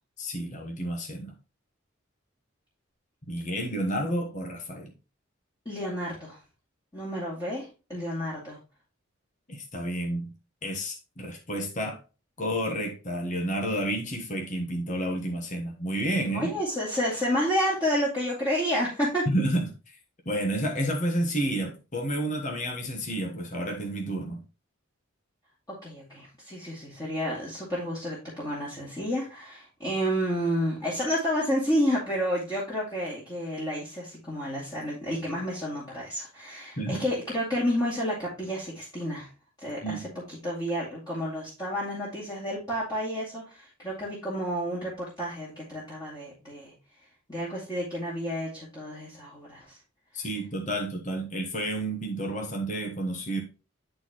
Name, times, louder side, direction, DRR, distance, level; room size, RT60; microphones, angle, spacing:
voice 1, 0.2-1.3 3.3-4.9 9.5-10.3 10.6-12.0 12.4-16.5 19.3-20.0 20.2-24.4 36.8-37.1 39.8-40.0 50.1-53.4, right 1 dB, 35° left, 1 dB, 1.2 m, -30 dB
voice 2, 5.7-6.4 6.9-8.6 16.3-19.3 25.7-39.3 39.6-40.0 40.3-46.7 47.3-49.8, equal, 20° left, -8 dB, 2.2 m, -30 dB
10.0 x 4.3 x 3.0 m, 0.32 s
head